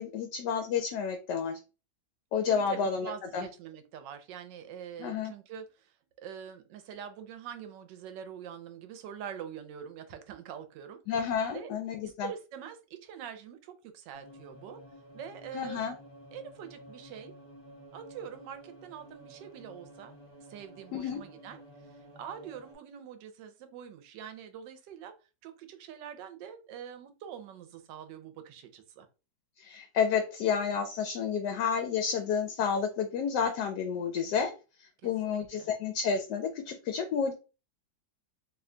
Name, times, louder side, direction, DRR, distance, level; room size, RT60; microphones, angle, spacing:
voice 1, 0.0-1.6 2.3-3.5 5.0-5.3 11.1-12.3 15.5-16.0 20.9-21.2 29.6-34.5 34.8-37.3, left 6 dB, 80° left, 6 dB, 1.2 m, -30 dB
voice 2, 2.5-11.0 11.5-11.7 12.0-14.8 15.1-15.9 16.3-17.3 17.9-20.2 20.5-25.1 25.4-29.1 35.0-35.7, right 8 dB, 90° right, 8 dB, 1.3 m, -44 dB
sound 1, 14.1-22.7, right 1 dB, 25° left, 0.5 m, -52 dB
3.1 x 2.2 x 3.7 m, 0.32 s
omnidirectional pair, 1.9 m